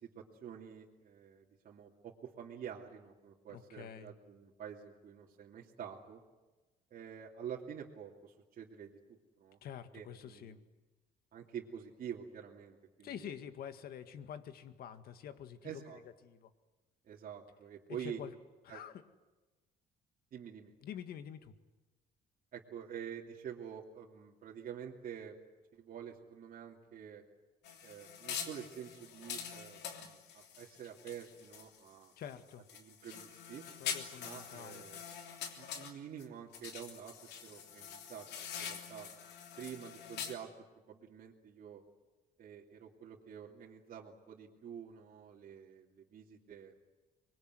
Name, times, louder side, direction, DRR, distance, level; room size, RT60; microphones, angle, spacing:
voice 1, 0.0-6.2 6.9-9.6 9.9-10.5 11.3-13.3 15.6-16.0 17.0-18.2 18.7-18.8 20.3-20.7 22.5-25.4 25.7-27.2 27.8-32.1 32.8-33.6 34.2-35.0 35.6-38.3 38.6-39.1 39.6-40.5 40.9-41.8 42.4-46.8, right 8 dB, 55° right, -3 dB, 2.8 m, -48 dB
voice 2, 3.5-4.1 9.6-10.6 13.0-15.8 16.2-16.5 18.0-18.3 18.7-19.0 20.8-21.5 32.2-32.7 33.8-34.8, left 9 dB, 65° left, 10 dB, 1.9 m, -47 dB
sound 1, 27.6-31.9 32.3-36.2 36.5-40.3, left 7 dB, 80° left, 3.2 m, -45 dB
25.0 x 22.0 x 9.5 m, 1.2 s
cardioid pair, 110°, 17 cm